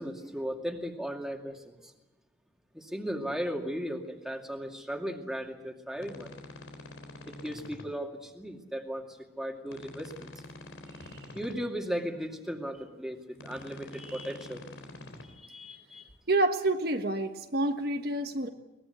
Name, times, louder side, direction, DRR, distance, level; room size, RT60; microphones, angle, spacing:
voice 1, 0.0-1.9 2.7-6.3 7.3-9.1 9.4-10.3 11.3-14.6 15.3-16.0, equal, ahead, 2 dB, 2.3 m, -36 dB
sound 1, 6.0-7.8 9.7-11.5 13.3-15.2, left 2 dB, 90° left, 3.8 m, -46 dB
voice 2, 16.3-18.5, right 2 dB, 55° right, 5 dB, 1.3 m, -28 dB
23.0 x 20.5 x 8.2 m, 1.0 s
head